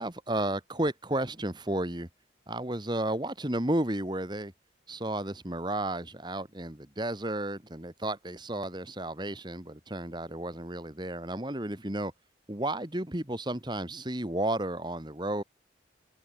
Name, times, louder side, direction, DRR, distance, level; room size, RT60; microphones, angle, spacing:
voice 1, 0.0-2.1 2.5-4.5 4.9-12.1 12.5-15.4, right 1 dB, 25° right, 2.0 m, -32 dB
head